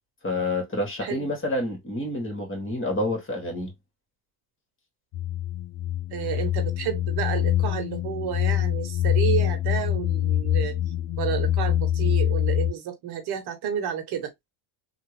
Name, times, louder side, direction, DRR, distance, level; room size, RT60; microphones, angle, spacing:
voice 1, 0.2-3.7, left 1 dB, 25° left, 2.0 m, -28 dB
voice 2, 1.0-1.3 6.1-10.8 11.2-14.3, right 9 dB, 55° right, 1.2 m, -31 dB
sound 1, 5.1-12.7, left 12 dB, 50° left, 0.6 m, -25 dB
3.4 x 2.4 x 3.3 m
supercardioid pair, 105°, 47 cm